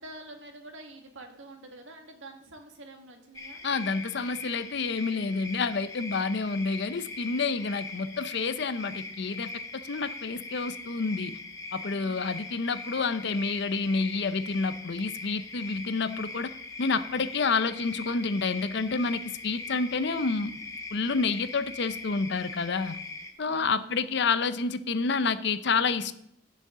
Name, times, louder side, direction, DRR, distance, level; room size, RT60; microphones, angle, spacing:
voice 1, 0.0-3.6 11.9-12.4 23.4-24.2, right 2 dB, 75° right, 3 dB, 1.7 m, -47 dB
sound 1, 3.3-23.3, left 3 dB, 15° left, 0.9 m, -41 dB
voice 2, 3.6-11.4 11.7-16.5 16.8-20.6 20.9-23.0 23.4-26.2, left 4 dB, 55° left, 13 dB, 0.6 m, -29 dB
15.5 x 6.6 x 3.7 m, 0.74 s
head